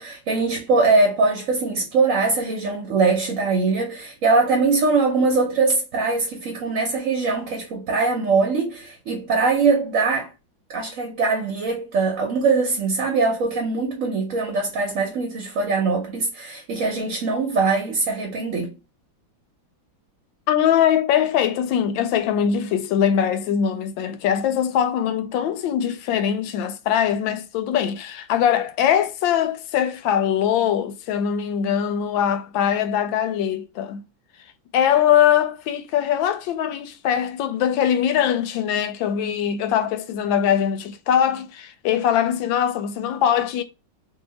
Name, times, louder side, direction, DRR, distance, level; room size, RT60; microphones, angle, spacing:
voice 1, 0.0-10.3 10.7-18.7, right 4 dB, 55° right, 1.0 m, -22 dB
voice 2, 20.5-34.0 34.7-43.6, left 9 dB, 80° left, 1.3 m, -22 dB
3.0 x 2.8 x 4.0 m
omnidirectional pair, 2.1 m